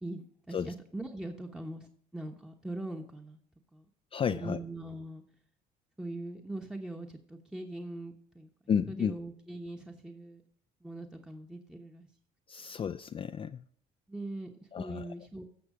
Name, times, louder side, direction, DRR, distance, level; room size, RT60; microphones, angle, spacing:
voice 1, 0.0-3.4 3.7-3.9 4.3-5.2 6.0-8.5 8.9-10.4 10.8-12.1 14.1-15.4, right 2 dB, 5° right, 1.0 m, -41 dB
voice 2, 4.1-4.6 8.7-9.2 12.5-13.6 14.7-15.1, left 7 dB, 35° left, 0.4 m, -32 dB
15.5 x 6.1 x 4.9 m
cardioid pair, 110°, 17 cm